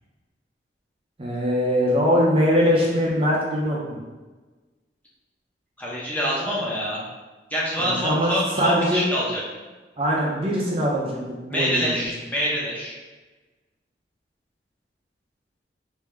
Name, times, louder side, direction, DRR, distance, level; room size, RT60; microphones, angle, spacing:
voice 1, 1.2-4.0 7.8-9.0 10.0-12.0, equal, 30° right, -4 dB, 0.6 m, -22 dB
voice 2, 5.8-7.0 7.5-9.4 11.5-13.0, equal, 10° left, -6 dB, 0.8 m, -26 dB
3.4 x 2.7 x 3.3 m, 1.3 s
head